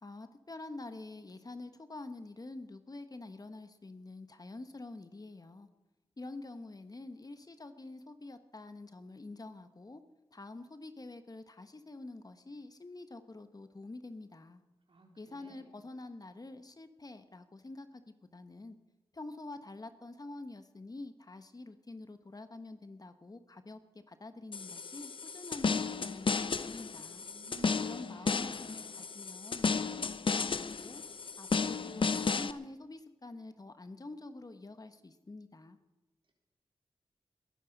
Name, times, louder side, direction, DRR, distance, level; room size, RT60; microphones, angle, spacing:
voice 1, 0.0-5.7 6.2-10.0 10.3-14.6 15.2-18.8 19.1-23.8 24.1-27.2 27.8-31.0 31.4-35.8, left 2 dB, 40° left, 1.3 m, -47 dB
voice 2, 14.9-15.8 27.2-28.9, right 3 dB, 60° right, 3.8 m, -56 dB
sound 1, 24.5-32.5, left 5 dB, 55° left, 0.7 m, -33 dB
21.0 x 10.0 x 5.4 m
cardioid pair, 40°, 10 cm